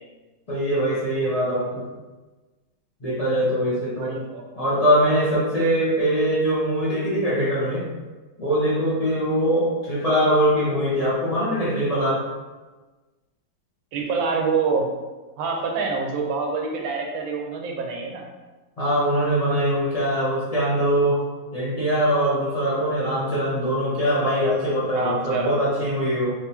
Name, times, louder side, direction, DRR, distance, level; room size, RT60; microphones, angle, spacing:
voice 1, 0.5-1.8 3.0-4.1 4.6-7.8 8.4-12.2 18.8-21.2 21.5-26.3, equal, 30° left, -8 dB, 0.7 m, -22 dB
voice 2, 4.0-4.4 13.9-14.9 15.4-18.3 24.9-25.6, right 4 dB, 80° right, 2 dB, 1.4 m, -26 dB
3.6 x 3.5 x 2.8 m, 1.2 s
omnidirectional pair, 2.2 m